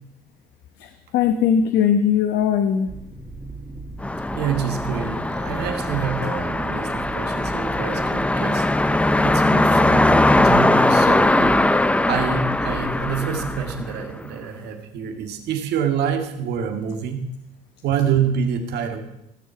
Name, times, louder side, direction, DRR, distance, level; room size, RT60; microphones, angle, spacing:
voice 1, 0.8-2.9, left 8 dB, 85° left, 7 dB, 1.1 m, -20 dB
sound 1, 2.9-13.8, right 2 dB, 10° right, 2.1 m, -36 dB
sound 2, 4.0-14.3, left 1 dB, 5° left, 0.6 m, -20 dB
voice 2, 4.3-11.6 12.1-17.2 17.8-19.0, right 7 dB, 75° right, 5 dB, 2.1 m, -27 dB
16.5 x 7.5 x 7.0 m, 0.83 s
cardioid pair, 110°, 17 cm